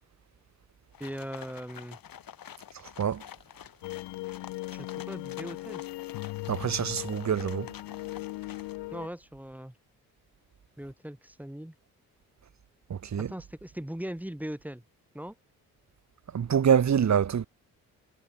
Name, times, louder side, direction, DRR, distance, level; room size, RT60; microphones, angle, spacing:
sound 1, 0.9-8.8, left 9 dB, 55° left, 3.7 m, -48 dB
voice 1, 1.0-2.0 4.7-5.8 8.9-9.8 10.8-11.7 13.3-14.8 15.1-15.3, equal, 5° right, 2.8 m, -39 dB
sound 2, 3.8-9.1, left 22 dB, 75° left, 1.2 m, -38 dB
voice 2, 6.5-7.7 12.9-13.3 16.3-17.5, right 8 dB, 45° right, 1.5 m, -25 dB
hypercardioid pair, 45°, 40 cm